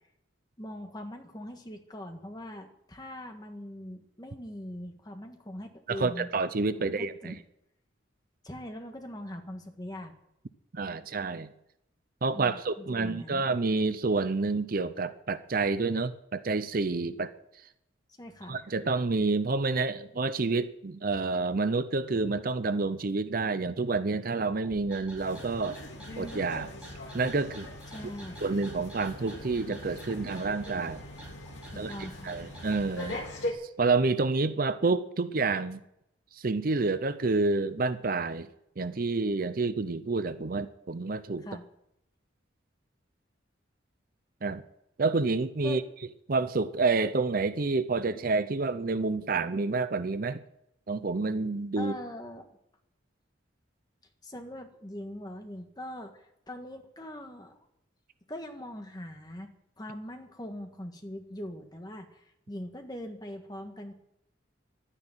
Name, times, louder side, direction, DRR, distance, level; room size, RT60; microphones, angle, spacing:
voice 1, 0.6-6.3 6.7-7.4 8.4-10.1 12.3-13.4 18.2-18.6 27.9-28.5 31.7-32.4 41.4-41.6 45.6-45.8 51.8-52.5 54.2-57.6 58.3-59.5 59.8-63.9, left 1 dB, 20° left, 4 dB, 1.6 m, -42 dB
voice 2, 5.9-7.4 10.7-11.5 12.2-17.3 18.5-25.8 26.2-26.7 27.1-27.7 28.4-31.0 31.8-31.9 32.2-33.2 33.8-35.8 36.3-38.5 38.8-41.5 44.4-44.6 45.0-45.8 46.3-50.4 50.9-51.9, right 3 dB, 45° right, 13 dB, 0.6 m, -28 dB
sound 1, 24.6-33.2, right 1 dB, 5° right, 4.6 m, -48 dB
sound 2, 25.2-33.5, left 1 dB, 65° left, 2.8 m, -41 dB
12.0 x 9.8 x 9.0 m, 0.81 s
head